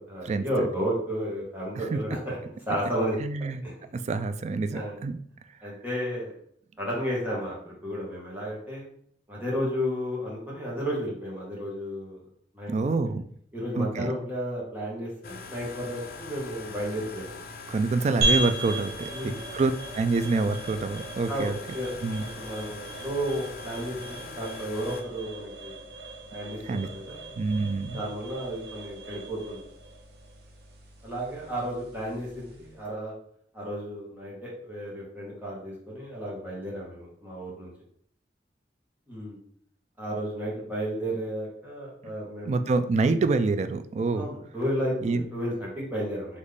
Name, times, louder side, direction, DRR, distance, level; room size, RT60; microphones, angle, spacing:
voice 1, 0.1-2.4 2.7-3.2 3.6-3.7 4.7-5.0 5.6-6.3 6.8-8.8 9.3-12.2 12.5-12.7 13.5-17.3 19.1-19.4 21.3-21.9 22.2-25.7 26.3-27.2 27.9-29.6 31.0-33.1 33.5-37.7 39.1-39.4 40.0-42.5 44.1-46.4, equal, 10° right, -6 dB, 1.6 m, -32 dB
voice 2, 3.2-3.6 3.9-5.2 12.7-13.2 13.8-14.1 17.7-21.6 22.0-22.2 26.6-26.9 27.4-28.0 42.5-44.3 45.0-45.2, right 3 dB, 40° right, 10 dB, 0.3 m, -26 dB
sound 1, 15.2-25.0, left 3 dB, 60° left, 0.5 m, -42 dB
sound 2, 18.2-32.8, right 2 dB, 65° right, 0.8 m, -36 dB
3.9 x 3.1 x 3.4 m, 0.63 s
head